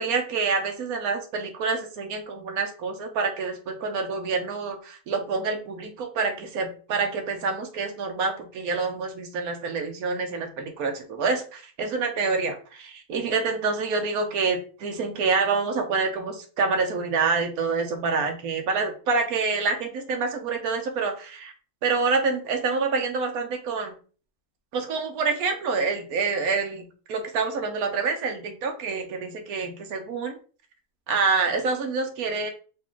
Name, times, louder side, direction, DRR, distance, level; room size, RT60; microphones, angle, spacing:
voice 1, 0.0-21.5 21.8-23.9 24.7-30.4 31.1-32.5, right 4 dB, 85° right, 5 dB, 1.2 m, -27 dB
4.1 x 2.6 x 3.6 m, 0.38 s
omnidirectional pair, 1.5 m